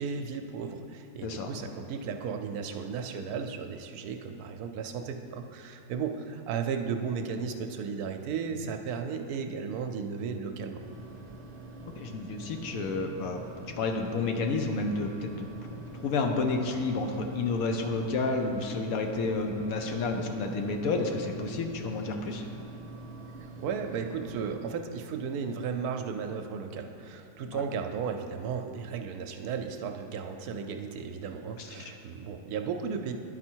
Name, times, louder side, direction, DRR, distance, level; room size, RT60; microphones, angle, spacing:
voice 1, 0.0-10.8 23.4-33.1, right 6 dB, 75° right, 5 dB, 1.0 m, -35 dB
sound 1, 10.8-24.6, right 3 dB, 45° right, 0.5 m, -44 dB
voice 2, 12.0-13.4 13.8-22.4 27.5-27.6 31.6-31.9, left 3 dB, 70° left, 4 dB, 1.0 m, -30 dB
10.5 x 4.2 x 4.5 m, 3.0 s
omnidirectional pair, 1.7 m